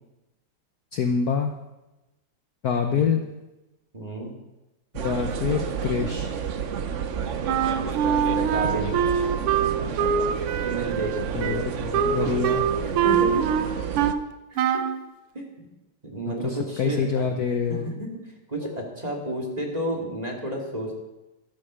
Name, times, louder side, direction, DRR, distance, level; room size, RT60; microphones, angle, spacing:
voice 1, 0.9-1.5 2.6-3.3 4.9-6.4 11.3-12.9 16.3-17.9, left 6 dB, 55° left, 5 dB, 1.1 m, -26 dB
voice 2, 3.9-4.3 7.8-9.0 10.6-11.6 12.2-12.3 12.8-13.5 14.5-14.8 15.3-15.4 16.0-18.1 18.5-21.0, right 1 dB, 20° right, 0 dB, 2.7 m, -31 dB
sound 1, 4.9-14.1, right 7 dB, 70° right, 0.7 m, -30 dB
Wind instrument woodwind instrument, 7.5-14.2 14.6-15.0, right 8 dB, 90° right, 1.7 m, -24 dB
13.0 x 12.0 x 6.4 m, 1.0 s
omnidirectional pair, 2.3 m